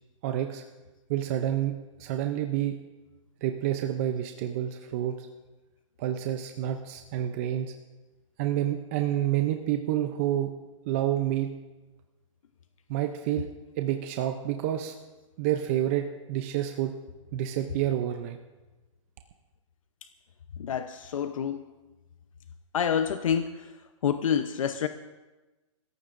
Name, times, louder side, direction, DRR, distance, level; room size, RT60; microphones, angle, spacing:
voice 1, 0.2-0.6 1.1-2.8 3.4-5.1 6.0-7.7 8.4-10.5 10.9-11.5 12.9-13.5 13.8-14.9 15.4-16.9 17.3-18.4, right 12 dB, 25° right, 6 dB, 0.5 m, -28 dB
voice 2, 20.6-21.6 22.7-23.7 24.0-24.9, left 8 dB, 80° left, 9 dB, 0.8 m, -27 dB
29.0 x 14.5 x 2.6 m, 1.1 s
hypercardioid pair, 170°, 17 cm